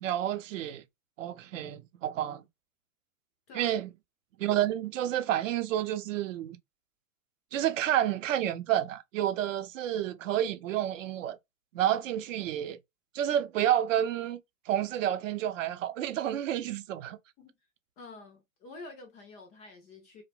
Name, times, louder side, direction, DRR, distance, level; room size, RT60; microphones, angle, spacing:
voice 1, 0.0-0.8 1.2-2.4 3.5-3.9 4.4-6.6 7.5-11.4 11.7-12.8 13.1-14.4 14.7-17.2, right 11 dB, 65° right, 0.6 m, -30 dB
voice 2, 18.0-20.2, left 3 dB, 20° left, 0.3 m, -48 dB
2.5 x 2.1 x 2.9 m
hypercardioid pair, 105°, 41 cm